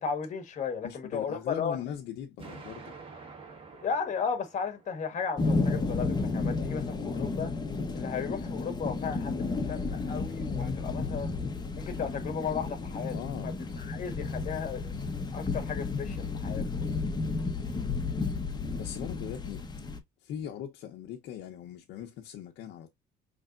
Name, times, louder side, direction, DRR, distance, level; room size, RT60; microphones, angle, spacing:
voice 1, 0.0-1.8 3.7-7.5 7.9-11.3 11.8-13.1 13.4-14.9 15.3-16.8, left 6 dB, 45° left, 1.4 m, -35 dB
voice 2, 0.8-3.0 6.9-7.3 11.0-11.3 13.1-13.6 18.8-19.6 20.2-22.9, left 9 dB, 80° left, 0.8 m, -40 dB
Explosion, 2.4-5.4, right 4 dB, 30° right, 1.8 m, -48 dB
sound 1, 5.4-20.0, left 3 dB, 25° left, 1.1 m, -32 dB
5.3 x 3.3 x 2.5 m
cardioid pair, 110°, 17 cm